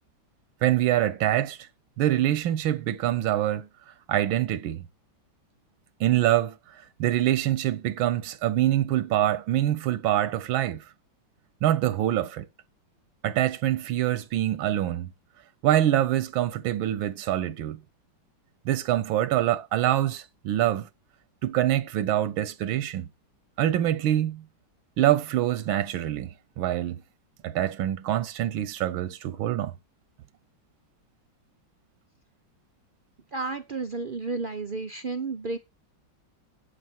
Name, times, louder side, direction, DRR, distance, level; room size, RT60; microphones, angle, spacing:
voice 1, 0.6-1.7 2.0-3.7 4.1-4.9 6.0-6.6 7.0-10.8 11.6-12.5 13.2-15.1 15.6-17.8 18.7-20.9 21.4-23.1 23.6-24.5 25.0-27.0 27.4-29.7, right 13 dB, 90° right, 1.6 m, -25 dB
voice 2, 33.3-35.6, right 3 dB, 75° right, 0.4 m, -32 dB
11.5 x 8.4 x 4.5 m
omnidirectional pair, 2.1 m